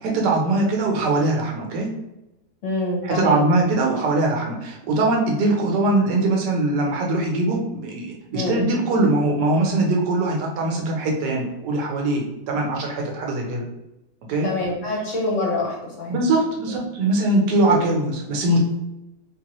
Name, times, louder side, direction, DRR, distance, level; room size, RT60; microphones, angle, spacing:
voice 1, 0.0-1.9 3.0-13.6 14.3-14.5 16.1-18.6, right 2 dB, 85° right, 0 dB, 1.4 m, -21 dB
voice 2, 2.6-3.4 8.3-8.6 14.4-16.2 16.7-16.8, left 2 dB, 55° left, -2 dB, 1.1 m, -26 dB
3.3 x 3.0 x 2.9 m, 0.96 s
omnidirectional pair, 1.8 m